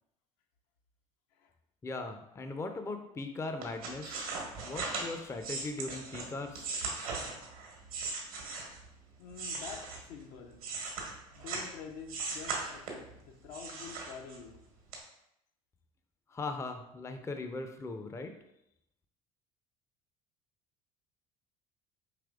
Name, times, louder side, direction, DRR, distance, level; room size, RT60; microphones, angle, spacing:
voice 1, 1.8-4.3 4.6-6.7 16.3-18.3, left 3 dB, 15° left, 6 dB, 0.4 m, -39 dB
sound 1, 3.6-8.9 9.3-11.7 12.1-13.1 13.5-14.6 14.9-15.0, right 4 dB, 85° right, 1.1 m, -38 dB
voice 2, 9.2-10.7 11.3-14.6 15.0-15.1, left 6 dB, 65° left, 4 dB, 0.6 m, -47 dB
4.9 x 3.0 x 2.4 m, 0.80 s
hypercardioid pair, 65°, 18 cm